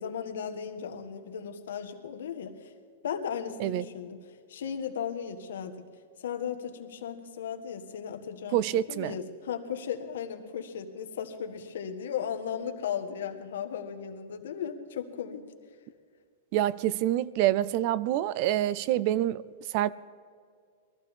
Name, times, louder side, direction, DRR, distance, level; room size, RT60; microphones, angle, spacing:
voice 1, 0.0-2.7 3.0-4.2 4.5-5.9 6.2-8.6 8.9-15.4, left 8 dB, 80° left, 6 dB, 1.5 m, -36 dB
voice 2, 8.5-9.2 16.5-19.9, right 13 dB, 40° right, 20 dB, 0.4 m, -27 dB
22.0 x 14.5 x 3.7 m, 2.2 s
supercardioid pair, 165°, 0 cm